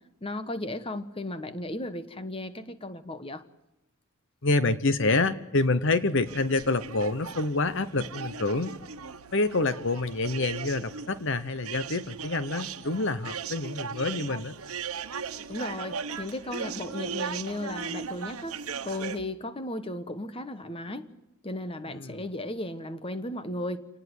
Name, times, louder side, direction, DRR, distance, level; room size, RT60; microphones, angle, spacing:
voice 1, 0.2-3.4 15.5-21.1 21.4-23.9, left 1 dB, 25° left, 11 dB, 1.2 m, -35 dB
voice 2, 4.4-8.7 9.3-14.6 21.9-22.2, left 3 dB, 55° left, 13 dB, 1.0 m, -27 dB
sound 1, 6.2-19.2, right 6 dB, 75° right, 1.3 m, -38 dB
28.0 x 19.5 x 8.1 m, 0.97 s
head